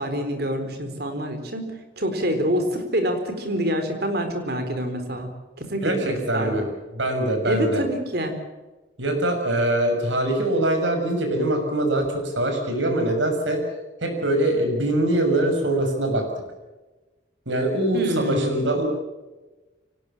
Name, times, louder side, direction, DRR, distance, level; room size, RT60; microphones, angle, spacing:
voice 1, 0.0-1.7 2.0-5.3 5.6-6.5 7.4-8.3 17.9-18.5, equal, 55° right, 6 dB, 4.2 m, -26 dB
voice 2, 5.8-6.6 6.9-7.8 9.0-13.6 14.0-16.2 17.5-18.8, right 1 dB, 80° right, 4 dB, 6.5 m, -23 dB
24.5 x 18.5 x 7.4 m, 1.1 s
head